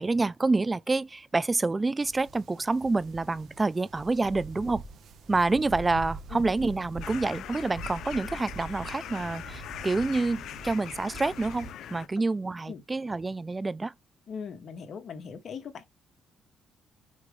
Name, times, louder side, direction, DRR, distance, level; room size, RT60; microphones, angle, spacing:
voice 1, 0.0-4.8 5.3-13.9, right 3 dB, 20° right, 0.5 m, -28 dB
sound 1, 2.0-11.7, right 3 dB, 70° right, 1.6 m, -44 dB
sound 2, 7.0-12.1, left 11 dB, 75° left, 0.7 m, -41 dB
voice 2, 14.3-15.9, left 6 dB, 60° left, 2.0 m, -39 dB
6.4 x 4.9 x 3.3 m
cardioid pair, 90°, 0 cm